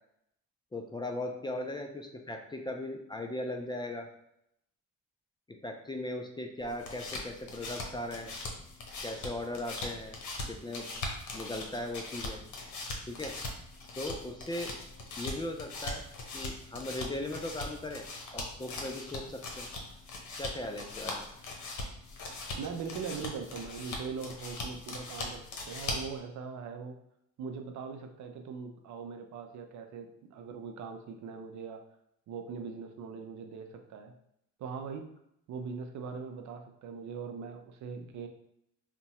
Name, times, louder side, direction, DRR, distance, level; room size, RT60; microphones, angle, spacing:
voice 1, 0.7-4.1 5.5-8.3 9.0-10.2 10.5-10.9 11.3-12.4 13.1-13.4 14.0-14.7 15.2-16.0 16.3-18.0 18.3-19.7 20.4-21.3, left 1 dB, 15° left, 3 dB, 0.3 m, -38 dB
sound 1, 6.6-26.2, left 2 dB, 70° left, 0.8 m, -41 dB
voice 2, 22.6-25.4 25.7-27.0 27.4-31.8 32.3-34.2 34.6-35.1 35.5-38.3, right 5 dB, 70° right, 5 dB, 0.6 m, -41 dB
2.8 x 2.2 x 4.1 m, 0.76 s
cardioid pair, 90°, 30 cm